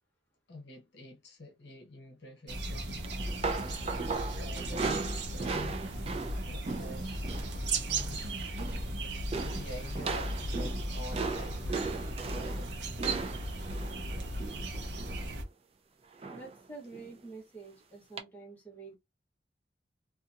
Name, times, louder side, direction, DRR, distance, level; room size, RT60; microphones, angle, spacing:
voice 1, 0.5-4.1 4.4-5.8 6.4-7.2 7.9-8.4 9.4-12.0 12.3-12.7, left 1 dB, 65° left, 0.9 m, -47 dB
sound 1, 2.5-15.4, right 1 dB, 70° right, 0.7 m, -36 dB
sound 2, 3.0-7.6 7.8-8.2 8.4-8.9 9.3-15.3 16.2-16.6 16.9-17.1 18.2-18.3, right 4 dB, 35° right, 0.4 m, -37 dB
voice 2, 16.3-19.0, right 3 dB, 10° left, 1.0 m, -48 dB
2.7 x 2.3 x 2.4 m
head